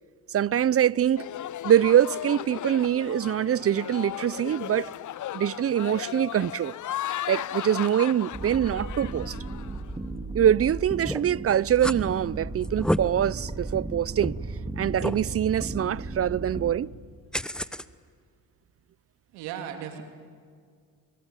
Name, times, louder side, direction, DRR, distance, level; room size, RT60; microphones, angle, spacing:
voice 1, 0.3-1.3 1.6-4.9 5.3-6.8 7.3-9.3 10.3-14.4 14.8-16.9, right 10 dB, 35° right, 0.6 m, -24 dB
sound 1, 1.2-9.9, left 12 dB, 50° left, 0.7 m, -36 dB
sound 2, 8.3-16.7, right 2 dB, 15° right, 2.5 m, -35 dB
sound 3, 11.1-11.3 11.8-12.0 12.6-13.0 13.6-13.7 14.2-14.3 15.0-15.2 17.3-17.8, equal, ahead, 0.9 m, -28 dB
voice 2, 19.3-20.0, right 9 dB, 90° right, 2.8 m, -36 dB
27.0 x 23.5 x 9.1 m
supercardioid pair, 65°, 39 cm